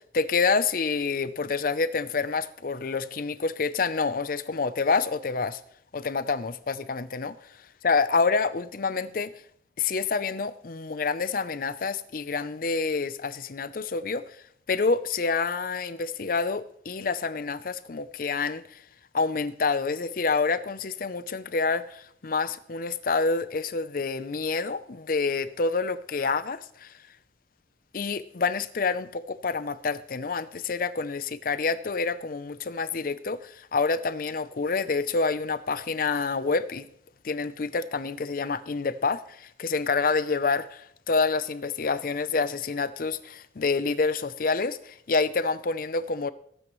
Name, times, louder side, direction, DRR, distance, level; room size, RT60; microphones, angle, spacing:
voice 1, 0.0-5.6 5.9-7.4 7.8-9.3 9.8-14.2 14.7-18.8 19.1-26.9 27.9-36.9 37.2-46.3, left 4 dB, 50° left, 0.5 m, -27 dB
18.0 x 9.1 x 3.1 m
head